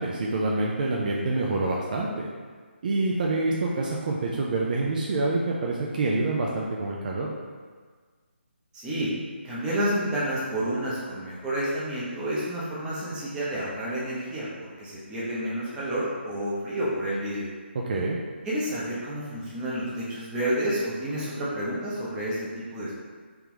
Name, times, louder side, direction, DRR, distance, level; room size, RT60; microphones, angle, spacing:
voice 1, 0.0-2.3 2.8-7.3 17.9-18.2, right 2 dB, 45° right, -3 dB, 0.5 m, -26 dB
voice 2, 8.7-9.1 9.4-17.5 18.4-22.9, right 1 dB, 10° right, -8 dB, 0.8 m, -30 dB
3.5 x 3.4 x 3.0 m, 1.5 s
figure-of-eight pair, 150°, 6 cm